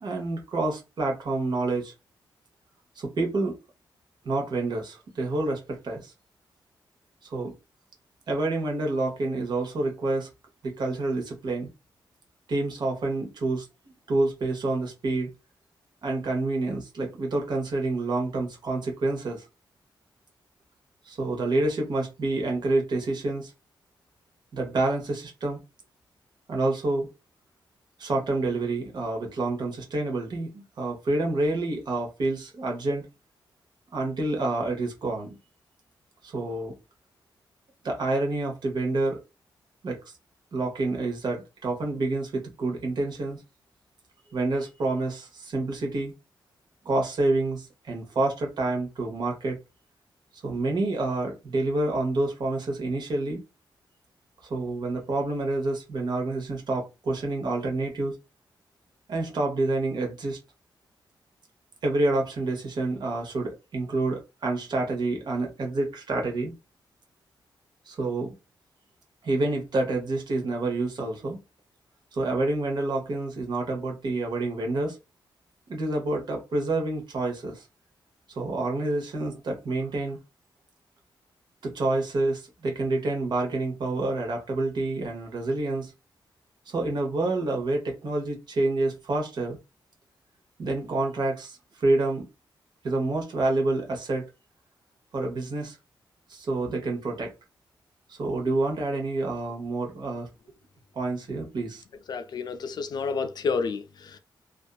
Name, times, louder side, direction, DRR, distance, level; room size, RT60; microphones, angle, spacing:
voice 1, 0.0-1.9 3.0-3.6 4.2-6.1 7.2-7.6 8.3-10.3 10.6-11.7 12.5-13.7 14.1-15.3 16.0-19.5 21.1-23.5 24.5-25.6 26.5-27.1 28.0-33.1 33.9-35.4 36.2-36.8 37.8-39.2 39.8-40.1 40.5-43.4 44.3-46.1 46.8-49.6 50.4-53.4 54.5-58.2 59.1-60.4 61.8-66.5 67.9-68.4 69.2-71.4 72.1-75.0 75.7-77.6 78.3-80.2 81.6-85.9 86.7-89.6 90.6-92.3 92.8-94.3 95.1-95.8 96.3-97.3 98.1-100.3 100.9-101.8, right 2 dB, 60° right, 1.0 m, -28 dB
voice 2, 102.1-104.2, left 5 dB, 55° left, 0.4 m, -30 dB
2.6 x 2.3 x 2.3 m
wide cardioid pair, 120°, 8 cm